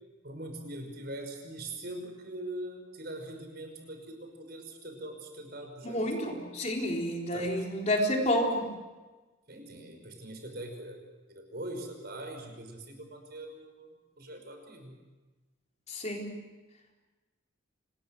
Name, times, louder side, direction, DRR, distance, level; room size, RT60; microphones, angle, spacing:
voice 1, 0.2-6.0 7.3-7.6 9.5-11.0 11.3-15.0, right 1 dB, 50° right, 4 dB, 5.6 m, -42 dB
voice 2, 5.8-8.7 15.9-16.3, equal, 35° left, 0 dB, 4.0 m, -29 dB
27.5 x 20.5 x 7.8 m, 1.2 s
head